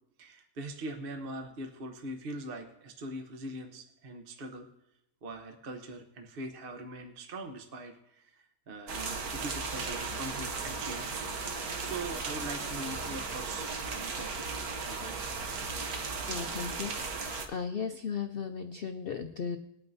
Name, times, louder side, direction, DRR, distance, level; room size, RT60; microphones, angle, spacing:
voice 1, 0.2-4.7 5.2-11.2 11.8-15.2, right 1 dB, 40° right, 5 dB, 1.0 m, -42 dB
sound 1, 8.9-17.5, right 4 dB, 65° right, 1.5 m, -36 dB
voice 2, 16.3-19.6, left 6 dB, 75° left, 6 dB, 0.5 m, -36 dB
21.5 x 8.9 x 2.6 m, 0.83 s
omnidirectional pair, 1.7 m